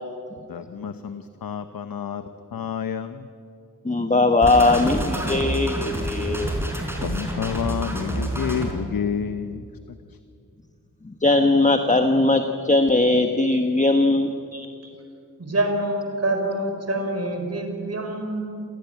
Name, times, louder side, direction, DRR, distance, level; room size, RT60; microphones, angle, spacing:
voice 1, 0.5-3.3 7.0-9.6 10.1-10.2, left 7 dB, 85° left, 10 dB, 1.0 m, -29 dB
voice 2, 3.8-6.5 11.0-14.3, left 2 dB, 20° left, 6 dB, 1.3 m, -19 dB
sound 1, 4.4-8.7, right 1 dB, 5° right, 5.1 m, -28 dB
voice 3, 14.5-14.9 15.4-18.6, right 1 dB, 45° right, 4 dB, 4.9 m, -26 dB
27.5 x 18.0 x 9.3 m, 2.4 s
wide cardioid pair, 80°, 34 cm